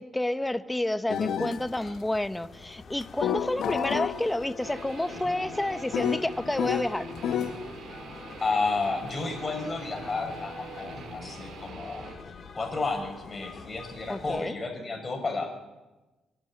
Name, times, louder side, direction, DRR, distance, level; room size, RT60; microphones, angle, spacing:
voice 1, 0.0-7.1 14.1-14.6, left 1 dB, 10° left, 12 dB, 1.0 m, -30 dB
sound 1, 1.1-1.6 3.0-7.6, left 9 dB, 70° left, 1.3 m, -31 dB
sound 2, 1.5-14.4, left 5 dB, 50° left, 2.1 m, -47 dB
Guitar, 4.6-12.2, right 4 dB, 65° right, 3.9 m, -44 dB
voice 2, 8.4-12.1 12.5-15.5, left 3 dB, 30° left, 4 dB, 6.1 m, -31 dB
26.0 x 12.0 x 9.8 m, 1.1 s
cardioid pair, 90°, 0 cm